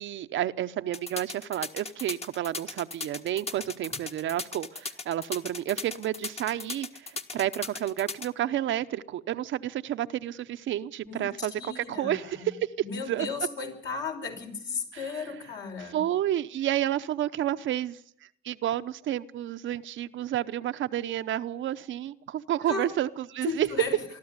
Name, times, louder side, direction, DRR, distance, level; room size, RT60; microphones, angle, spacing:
voice 1, 0.0-12.7 13.1-13.3 15.8-18.0 18.4-23.7, right 12 dB, 75° right, 0.8 m, -30 dB
sound 1, 0.9-8.3, left 3 dB, 30° left, 1.5 m, -37 dB
voice 2, 11.1-12.5 12.8-16.0 22.7-22.9 23.4-24.0, left 4 dB, 65° left, 5.4 m, -35 dB
24.0 x 12.5 x 9.6 m
cardioid pair, 90°, 20 cm